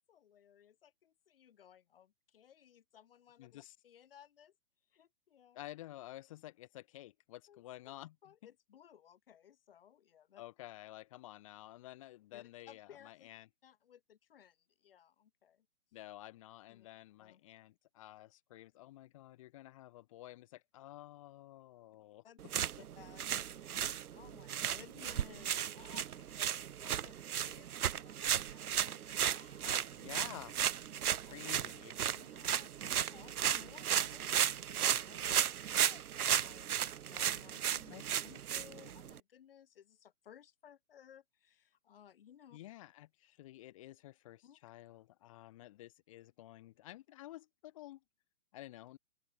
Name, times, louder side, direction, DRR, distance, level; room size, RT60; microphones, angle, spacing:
voice 1, 0.0-4.5 4.9-5.6 7.5-7.6 7.9-8.0 8.2-10.4 12.3-13.3 13.6-15.7 16.7-16.9 17.2-17.4 22.2-29.7 31.1-31.3 32.1-38.0 38.2-42.6 44.4-44.6, left 9 dB, 40° left, 7.0 m, -60 dB
voice 2, 3.4-3.8 5.5-8.2 10.4-13.5 15.9-22.5 29.6-30.6 31.3-31.9 37.9-38.0 42.5-48.0 48.5-49.0, left 15 dB, 25° left, 3.0 m, -51 dB
sound 1, 22.4-39.2, right 10 dB, 85° right, 0.9 m, -35 dB
open air
hypercardioid pair, 175°, 43 cm